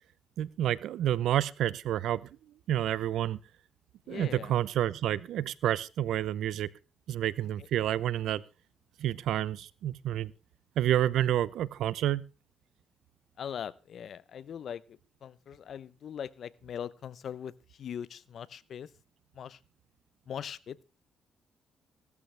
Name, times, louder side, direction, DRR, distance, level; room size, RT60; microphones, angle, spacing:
voice 1, 0.4-2.2 2.7-3.4 4.1-6.7 7.1-8.4 9.0-10.3 10.8-12.2, right 12 dB, 80° right, 20 dB, 0.7 m, -29 dB
voice 2, 4.1-4.5 13.4-17.5 17.8-18.9 19.3-19.6 20.3-20.8, left 8 dB, 60° left, 19 dB, 0.8 m, -41 dB
16.5 x 13.5 x 3.4 m, 0.31 s
cardioid pair, 90°, 0 cm